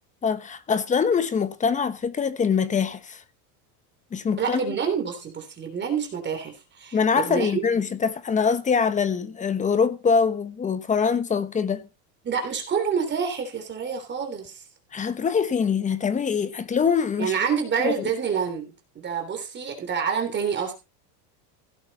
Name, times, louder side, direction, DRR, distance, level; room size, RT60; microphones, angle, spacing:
voice 1, 0.2-3.2 4.1-4.6 6.9-11.9 14.9-17.3 17.8-18.1, left 6 dB, 15° left, 1.0 m, -24 dB
voice 2, 4.4-7.6 12.2-14.6 17.2-20.7, right 6 dB, 20° right, 3.3 m, -27 dB
16.5 x 9.4 x 4.2 m
cardioid pair, 160°, 47 cm